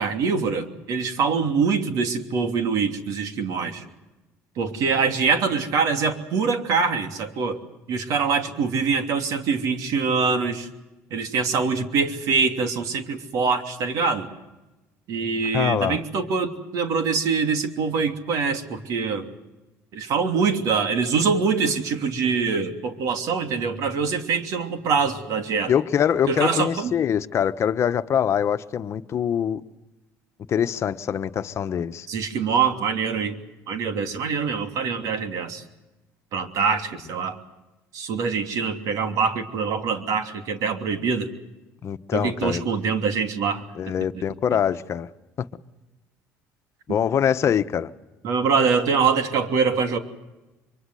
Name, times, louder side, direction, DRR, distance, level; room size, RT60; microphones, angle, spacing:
voice 1, 0.0-3.8 4.6-7.6 7.9-10.7 11.1-14.3 15.1-19.3 19.9-25.7 26.3-26.9 32.1-33.4 33.7-35.6 36.3-37.4 37.9-41.3 42.1-43.6 46.9-47.0 48.2-50.0, right 5 dB, 65° right, 3.0 m, -24 dB
voice 2, 15.5-16.0 25.7-29.6 30.5-32.1 41.8-42.6 43.8-45.1 46.9-47.9, left 8 dB, 45° left, 1.2 m, -23 dB
24.5 x 24.0 x 7.8 m
supercardioid pair, 90°, 6 cm